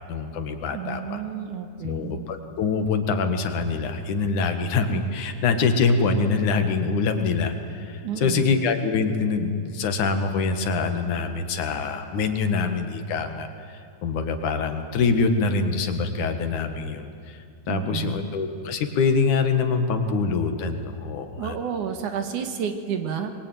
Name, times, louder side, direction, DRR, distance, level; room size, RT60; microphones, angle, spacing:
voice 1, 0.1-1.2 1.8-17.4 17.7-21.6, left 4 dB, 75° left, 7 dB, 3.2 m, -25 dB
voice 2, 0.7-2.3 8.0-8.4 17.7-18.1 21.4-23.3, right 8 dB, 75° right, 6 dB, 3.0 m, -30 dB
24.5 x 22.0 x 9.2 m, 2.3 s
omnidirectional pair, 3.6 m